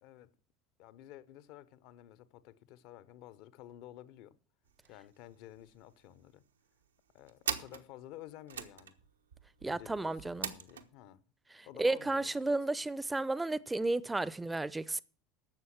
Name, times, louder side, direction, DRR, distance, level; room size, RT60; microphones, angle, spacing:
voice 1, 0.0-0.3 0.8-4.4 4.9-6.4 7.1-9.0 9.6-11.2 11.7-12.5, left 13 dB, 60° left, 0.9 m, -52 dB
sound 1, 4.7-4.9 5.2-5.3 5.6-6.2 6.8-10.9, right 8 dB, 80° right, 1.1 m, -42 dB
voice 2, 9.6-10.5 11.5-15.0, right 2 dB, 10° right, 0.6 m, -33 dB
12.0 x 7.7 x 5.9 m
hypercardioid pair, 75°, 0 cm